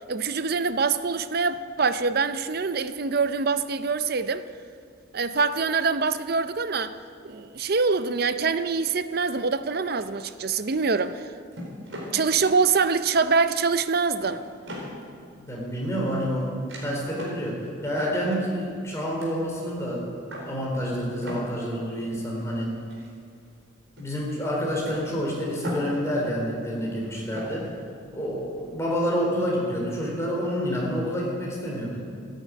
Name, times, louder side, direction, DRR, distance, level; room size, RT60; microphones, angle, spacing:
voice 1, 0.1-4.5 5.1-7.0 7.2-11.2 12.1-14.4, right 4 dB, 50° right, 0.6 m, -24 dB
sound 1, 10.0-11.2 11.5-12.6 13.1-13.6 13.9-15.1 15.6-16.4 16.7-16.8 17.2-17.5 17.8-19.5 19.9-20.6 21.0-23.7 24.0-24.1 24.8-26.2 26.5-28.8, equal, 75° right, 4.4 m, -40 dB
voice 2, 15.4-16.5 16.8-20.0 20.4-22.7 24.0-27.7 28.1-32.0, equal, 15° left, 4.0 m, -28 dB
14.0 x 10.5 x 9.2 m
head